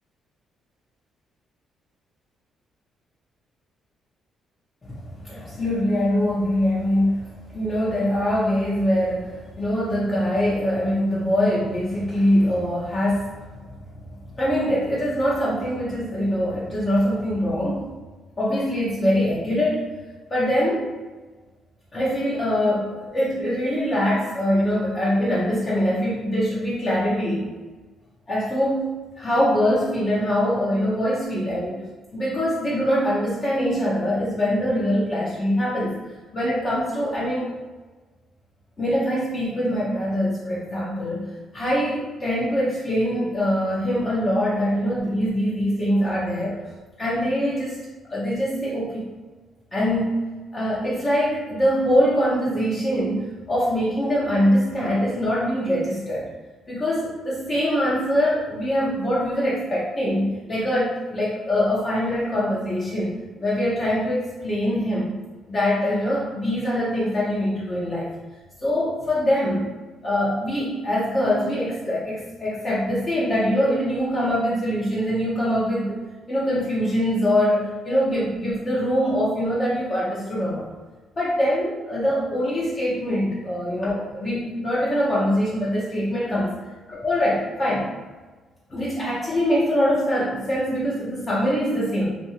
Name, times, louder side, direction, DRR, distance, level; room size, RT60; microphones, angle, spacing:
voice 1, 4.9-13.8 14.2-18.0 18.4-19.9 20.3-20.9 21.9-27.5 28.3-31.8 32.1-36.0 36.3-37.5 38.8-46.6 47.0-49.1 49.7-50.1 50.5-56.3 56.7-63.1 63.4-65.2 65.5-68.1 68.6-69.7 70.0-75.9 76.3-80.7 81.2-86.5 86.9-87.9 88.7-92.1, equal, 35° left, -7 dB, 0.7 m, -23 dB
2.5 x 2.3 x 2.9 m, 1.3 s
cardioid pair, 90°, 0 cm